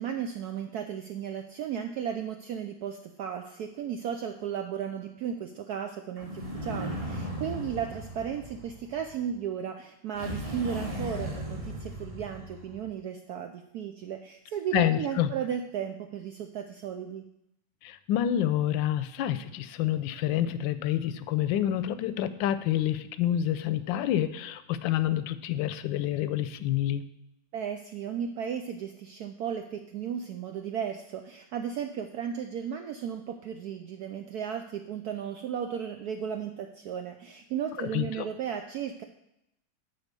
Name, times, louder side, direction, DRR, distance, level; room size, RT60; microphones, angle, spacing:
voice 1, 0.0-17.2 27.5-39.0, right 8 dB, 75° right, 6 dB, 0.9 m, -35 dB
sound 1, 6.2-9.2 10.1-12.9, equal, 20° right, 1.4 m, -37 dB
voice 2, 14.7-15.3 17.8-27.0 37.8-38.2, left 11 dB, 75° left, 13 dB, 1.3 m, -28 dB
9.7 x 4.3 x 6.6 m, 0.81 s
omnidirectional pair, 2.2 m